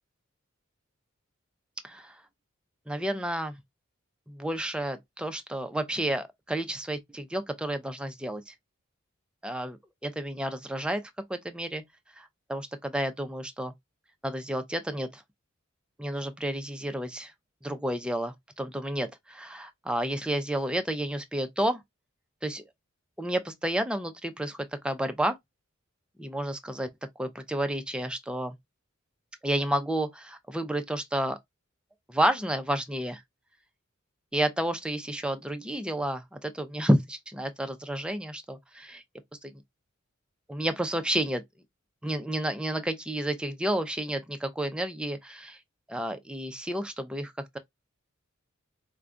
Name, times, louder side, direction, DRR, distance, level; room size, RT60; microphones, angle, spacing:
voice 1, 1.8-2.2 2.9-3.6 4.3-8.5 9.4-11.0 11.3-11.8 12.2-13.7 14.2-15.2 16.0-17.3 17.6-21.8 22.4-22.6 23.2-25.4 26.2-26.9 27.2-28.6 29.4-31.4 32.1-33.2 34.3-39.0 39.4-39.5 40.5-41.4 42.0-45.6 45.9-47.6, right 1 dB, 5° right, 0.4 m, -31 dB
4.7 x 2.2 x 2.5 m
head